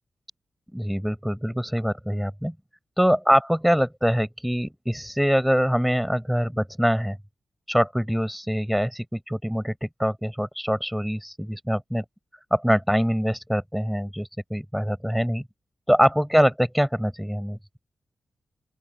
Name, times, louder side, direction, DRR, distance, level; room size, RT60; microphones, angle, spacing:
voice 1, 0.7-2.5 3.0-7.2 7.7-12.0 12.5-15.4 15.9-17.6, equal, ahead, 6.0 m, -24 dB
open air
wide cardioid pair, 95°, 0 cm